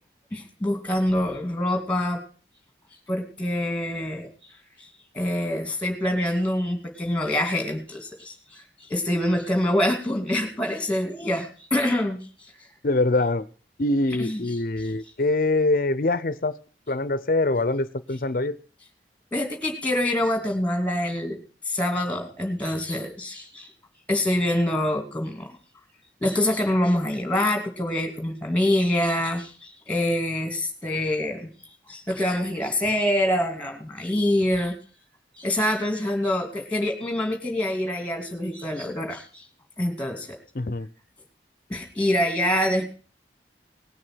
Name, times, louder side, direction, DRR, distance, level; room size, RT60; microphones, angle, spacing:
voice 1, 0.3-2.2 3.1-4.3 4.8-4.9 5.1-8.6 8.9-12.2 14.2-14.4 19.3-23.7 24.1-25.5 26.2-31.5 31.9-34.8 35.4-39.4 39.8-40.4 41.7-42.9, left 1 dB, 10° left, 4 dB, 2.5 m, -25 dB
voice 2, 12.8-13.4 13.8-16.6 16.9-18.6 40.5-40.9, left 2 dB, 50° left, 16 dB, 0.7 m, -24 dB
19.0 x 6.5 x 6.2 m, 0.39 s
head